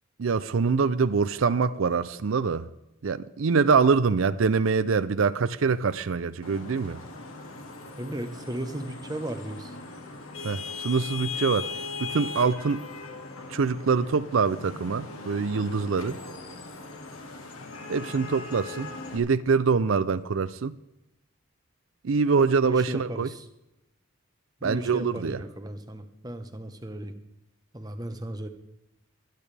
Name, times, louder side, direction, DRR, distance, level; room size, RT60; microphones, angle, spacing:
voice 1, 0.2-2.7 3.0-7.0 10.4-11.7 12.0-12.8 13.5-16.2 17.9-20.8 22.0-23.3 24.6-25.4, right 5 dB, 75° right, 0.5 m, -24 dB
Vehicle horn car horn honking / Traffic noise roadway noise, 6.4-19.2, left 4 dB, 90° left, 2.1 m, -39 dB
voice 2, 8.0-9.7 22.6-23.4 24.6-27.2 27.7-28.5, right 1 dB, 20° right, 1.0 m, -35 dB
24.5 x 9.4 x 3.4 m
head